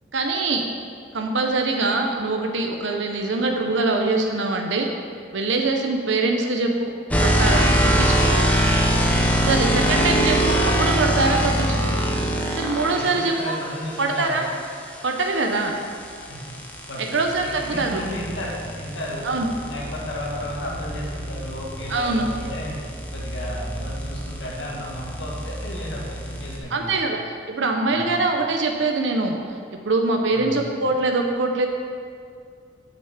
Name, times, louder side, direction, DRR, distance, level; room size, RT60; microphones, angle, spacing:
voice 1, 0.1-0.7 1.1-4.9 5.3-6.9 7.2-8.3 9.5-11.9 12.6-13.6 14.0-14.5 15.0-15.8 17.1-18.0 19.2-19.5 21.9-22.3 26.7-27.2 27.5-29.4 29.8-31.7, right 3 dB, 80° right, 3 dB, 0.7 m, -23 dB
sound 1, 7.1-13.1 15.6-26.6, equal, 10° left, 0.7 m, -24 dB
voice 2, 12.9-14.5 16.3-16.5 16.9-19.3 19.6-22.8 23.1-26.9 27.9-28.2 30.3-30.9, equal, 75° left, -4 dB, 2.0 m, -34 dB
6.5 x 6.1 x 7.2 m, 2.3 s
head